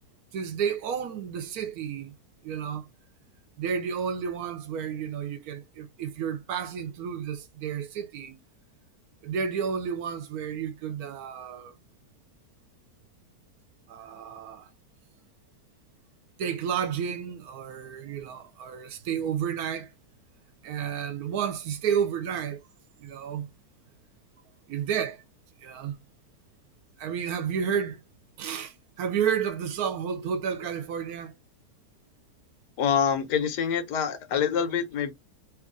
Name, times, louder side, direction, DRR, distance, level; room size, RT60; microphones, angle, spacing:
voice 1, 0.3-2.1 2.4-2.9 3.6-8.4 9.2-11.7 13.9-14.7 16.4-19.9 20.6-22.6 23.0-23.5 24.7-25.2 25.6-26.0 27.0-28.0 28.4-31.3, right 7 dB, 75° right, 1.0 m, -31 dB
voice 2, 32.8-35.1, left 7 dB, 90° left, 1.4 m, -26 dB
3.0 x 2.3 x 3.7 m
omnidirectional pair, 1.7 m